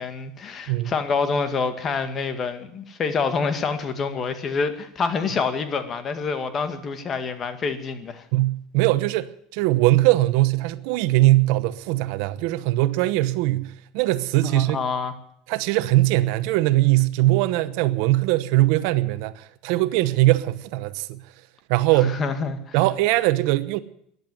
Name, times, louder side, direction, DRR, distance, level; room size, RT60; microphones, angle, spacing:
voice 1, 0.0-8.2 14.4-15.1 22.0-22.8, left 5 dB, 30° left, 2.0 m, -27 dB
voice 2, 8.3-14.8 15.5-21.2 21.7-22.2 22.7-23.8, right 17 dB, 70° right, 0.9 m, -21 dB
14.5 x 10.5 x 9.2 m
supercardioid pair, 130°, 0 cm